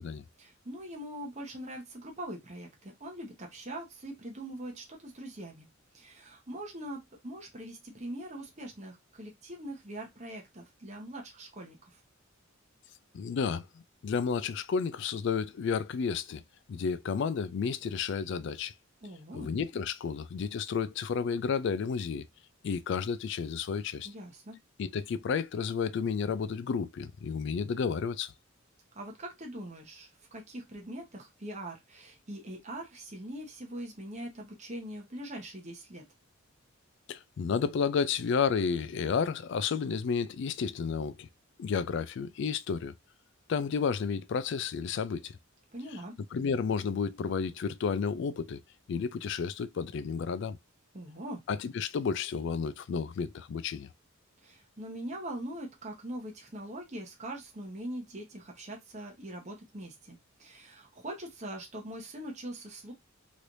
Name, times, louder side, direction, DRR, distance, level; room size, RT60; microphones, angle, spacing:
voice 1, 0.4-5.7 5.9-12.0 19.0-19.5 24.0-24.6 28.9-36.0 45.7-46.1 50.9-51.4 54.4-62.9, right 1 dB, 35° right, 0.9 m, -42 dB
voice 2, 13.1-16.4 16.7-18.7 19.3-22.3 22.6-24.1 24.8-28.3 37.1-41.3 41.6-42.9 43.5-45.4 46.3-48.6 48.9-50.6 51.5-53.9, left 6 dB, 60° left, 0.3 m, -31 dB
3.2 x 3.0 x 2.6 m
head